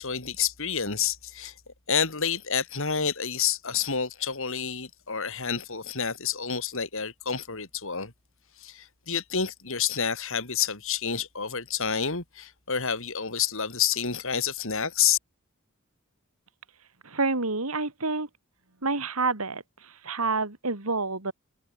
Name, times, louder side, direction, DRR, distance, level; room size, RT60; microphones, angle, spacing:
voice 1, 0.0-1.5 1.9-8.1 8.6-15.2, left 7 dB, 65° left, 4.0 m, -29 dB
voice 2, 17.0-18.3 18.8-21.3, right 3 dB, 90° right, 3.0 m, -28 dB
head